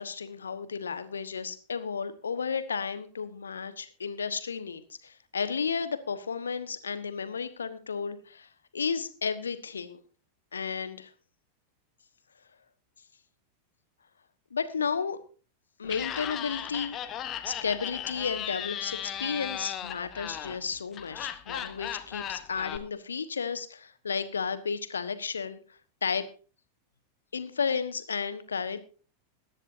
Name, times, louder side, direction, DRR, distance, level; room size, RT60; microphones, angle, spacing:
voice 1, 0.0-10.0 10.5-11.1 14.5-15.2 15.8-17.0 17.4-25.6 26.0-26.3 27.3-28.8, left 6 dB, 70° left, 12 dB, 1.3 m, -33 dB
Laughter, 15.8-22.8, left 10 dB, 30° left, 1.2 m, -36 dB
21.5 x 10.5 x 2.7 m, 0.37 s
figure-of-eight pair, 90°, 0 cm